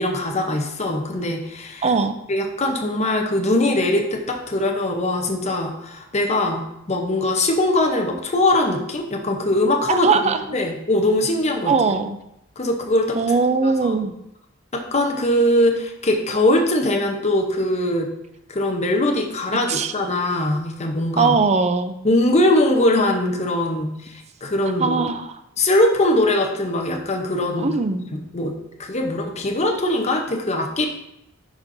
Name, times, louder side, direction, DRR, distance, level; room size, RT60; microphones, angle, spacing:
voice 1, 0.0-1.9 2.3-10.1 10.5-11.7 12.6-13.2 13.6-13.9 14.7-18.1 18.5-21.4 22.0-25.0 25.6-27.7 28.1-30.9, left 1 dB, 35° left, 3 dB, 0.8 m, -21 dB
voice 2, 1.8-2.2 9.9-10.4 11.7-12.2 13.1-14.1 19.7-19.9 21.2-22.0 24.8-25.3 27.6-28.2, right 4 dB, 35° right, 9 dB, 0.5 m, -20 dB
11.0 x 4.3 x 2.6 m, 0.82 s
head